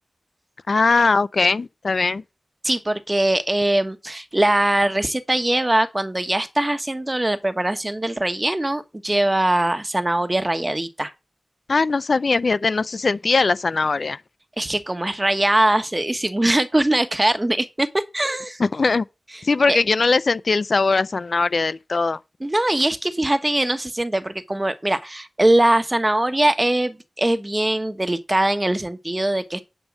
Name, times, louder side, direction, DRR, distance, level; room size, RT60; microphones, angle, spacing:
voice 1, 0.7-2.2 11.7-14.2 18.6-19.1 19.4-22.2, left 4 dB, 70° left, 0.4 m, -20 dB
voice 2, 2.6-11.1 14.6-18.6 19.7-19.8 22.4-29.6, right 1 dB, 25° right, 1.3 m, -21 dB
10.5 x 5.4 x 6.2 m
wide cardioid pair, 50°, 0 cm